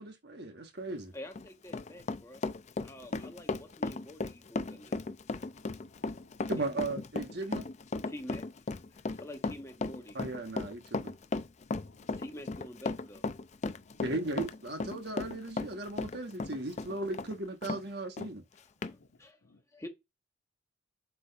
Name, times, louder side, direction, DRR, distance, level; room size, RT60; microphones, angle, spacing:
voice 1, 0.0-1.1 6.5-7.7 10.1-11.1 14.0-18.4, right 2 dB, 60° right, 1.3 m, -37 dB
voice 2, 1.1-2.4 2.8-5.0 6.6-6.9 8.0-8.4 9.2-10.2 12.1-13.2 18.5-18.9 19.2-19.4 19.7-19.9, left 1 dB, 15° left, 1.2 m, -47 dB
Run, 1.2-17.8 18.2-18.3 18.8-18.9, left 3 dB, 35° left, 0.4 m, -36 dB
voice 3, 2.9-3.2 4.7-5.1 5.5-6.5 8.9-9.3 11.6-12.6 13.8-14.1 19.0-19.1 19.4-19.6, left 3 dB, 75° left, 1.3 m, -62 dB
7.9 x 4.9 x 2.5 m
head